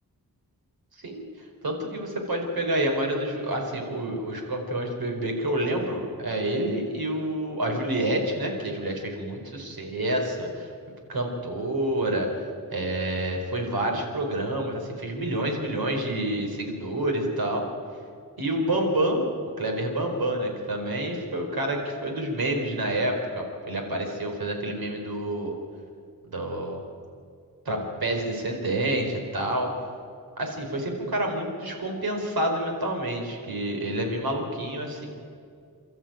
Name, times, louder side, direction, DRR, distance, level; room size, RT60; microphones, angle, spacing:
voice 1, 1.6-10.7 11.1-12.3 12.7-17.7 18.4-25.5 26.3-26.8 27.6-29.7 30.4-35.1, right 1 dB, 85° right, 2 dB, 4.6 m, -28 dB
29.5 x 13.5 x 9.0 m, 2.3 s
wide cardioid pair, 150°, 36 cm